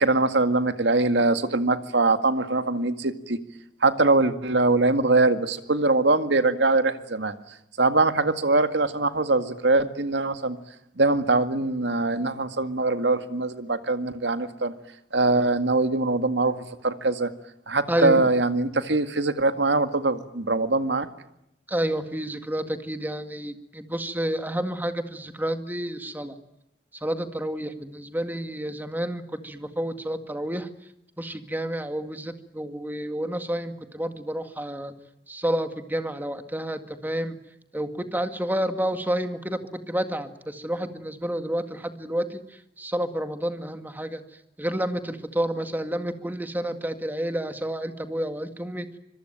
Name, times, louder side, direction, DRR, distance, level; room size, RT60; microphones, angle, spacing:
voice 1, 0.0-3.4 3.8-7.4 7.8-10.6 11.0-14.7 15.1-17.3 17.7-21.1, right 2 dB, 80° right, 9 dB, 2.0 m, -22 dB
voice 2, 17.9-18.2 21.7-26.3 27.0-30.7 31.2-34.9 35.3-37.4 37.7-39.6 39.9-42.4 42.8-44.2 44.6-48.9, right 1 dB, 10° right, 8 dB, 2.0 m, -29 dB
25.5 x 22.5 x 9.2 m, 0.81 s
head